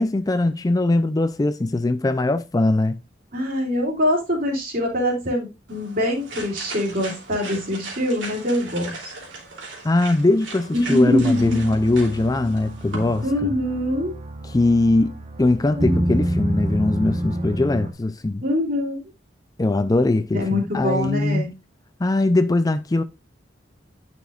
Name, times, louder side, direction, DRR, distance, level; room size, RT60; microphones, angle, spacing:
voice 1, 0.0-3.0 9.8-13.2 14.5-18.4 19.6-21.4 22.0-23.0, left 2 dB, 20° left, 0.4 m, -21 dB
voice 2, 3.3-9.1 10.7-11.7 13.2-14.1 15.8-16.0 18.4-19.0 20.3-21.5, left 1 dB, 50° right, 3.1 m, -23 dB
sound 1, 5.7-13.2, right 3 dB, 90° right, 2.9 m, -38 dB
sound 2, 11.4-17.9, right 1 dB, 35° right, 1.1 m, -28 dB
9.7 x 6.1 x 2.4 m
head